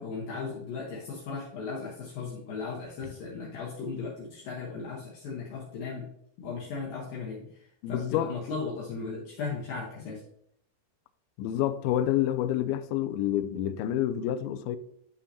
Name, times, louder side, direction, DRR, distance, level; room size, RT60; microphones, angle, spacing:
voice 1, 0.0-6.1 6.4-10.2, left 4 dB, 70° left, 2.5 m, -37 dB
voice 2, 7.8-8.3 11.4-14.8, left 11 dB, 85° left, 2.2 m, -28 dB
11.5 x 5.5 x 2.8 m
omnidirectional pair, 4.9 m